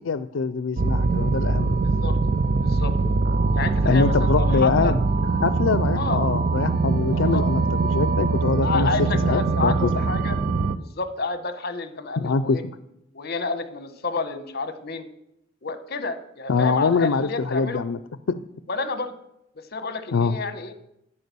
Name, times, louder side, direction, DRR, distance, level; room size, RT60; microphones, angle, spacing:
voice 1, 0.0-1.8 3.8-5.0 5.4-9.9 12.2-12.6 16.5-18.0 18.3-18.4 20.1-20.4, left 4 dB, 80° left, 13 dB, 0.5 m, -24 dB
sound 1, 0.8-10.8, right 3 dB, 45° right, 0.5 m, -22 dB
voice 2, 2.6-2.9 3.5-4.9 6.0-6.2 7.1-7.4 8.6-10.4 10.8-12.6 13.1-15.1 15.6-17.8 18.7-19.1 19.6-20.7, left 3 dB, 55° left, 10 dB, 1.1 m, -30 dB
10.5 x 8.7 x 6.9 m, 0.82 s
head